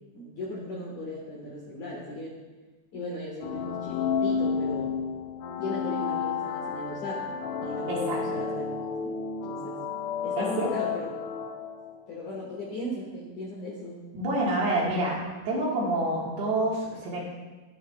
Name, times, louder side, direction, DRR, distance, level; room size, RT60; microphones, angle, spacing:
voice 1, 0.2-2.3 2.9-5.0 5.6-7.4 7.6-9.2 9.4-9.8 10.2-11.1 12.1-14.0, left 1 dB, 60° left, -5 dB, 2.1 m, -37 dB
sound 1, 3.4-12.0, left 5 dB, 85° left, 3.3 m, -31 dB
voice 2, 7.9-8.2 10.4-10.7 14.1-17.2, right 1 dB, 65° right, -4 dB, 3.2 m, -28 dB
13.5 x 10.5 x 2.3 m, 1.2 s
omnidirectional pair, 5.6 m